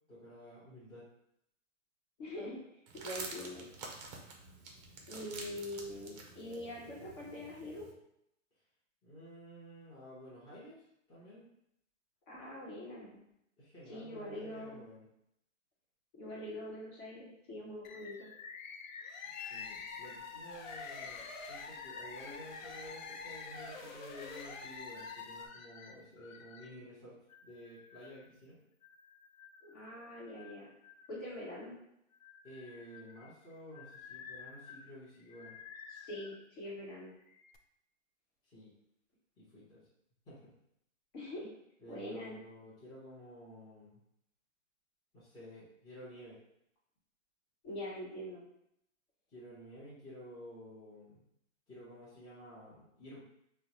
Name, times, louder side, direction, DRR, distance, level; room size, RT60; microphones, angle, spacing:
voice 1, 0.1-1.1 9.0-10.8 11.1-11.5 13.6-15.1 19.4-28.6 32.4-35.6 38.4-38.7 39.4-39.8 40.3-40.5 41.8-44.0 45.1-46.4 49.3-51.2 51.7-53.2, equal, 10° left, -11 dB, 0.9 m, -52 dB
voice 2, 2.2-2.6 3.0-3.6 5.1-7.9 12.3-13.2 13.9-14.8 16.2-18.3 29.6-30.7 31.1-31.7 35.9-37.1 41.1-41.5 41.9-42.3 47.6-48.4, left 1 dB, 40° left, -4 dB, 1.1 m, -44 dB
sound 1, 2.9-7.9, right 3 dB, 30° right, 0.5 m, -48 dB
Bird, 17.8-26.8 27.3-28.3 28.8-29.8 30.3-31.6 32.1-36.4 37.1-37.6, left 6 dB, 90° left, 0.5 m, -50 dB
sound 2, 19.0-25.5, left 3 dB, 60° left, 0.8 m, -48 dB
3.6 x 2.2 x 2.9 m, 0.77 s
hypercardioid pair, 145°, 39 cm